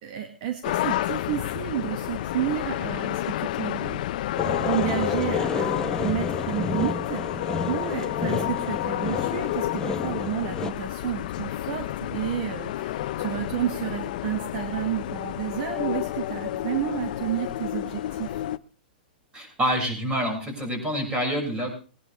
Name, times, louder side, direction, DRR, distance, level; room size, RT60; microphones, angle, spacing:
voice 1, 0.0-4.0 4.4-18.4, right 11 dB, 50° right, 5 dB, 2.0 m, -31 dB
sound 1, 0.6-18.6, left 14 dB, 60° left, 0.7 m, -30 dB
sound 2, 4.4-10.7, left 4 dB, 10° left, 1.2 m, -31 dB
voice 2, 19.3-21.7, equal, 20° right, 3 dB, 6.3 m, -27 dB
21.0 x 10.5 x 3.5 m, 0.37 s
hypercardioid pair, 130°, 5 cm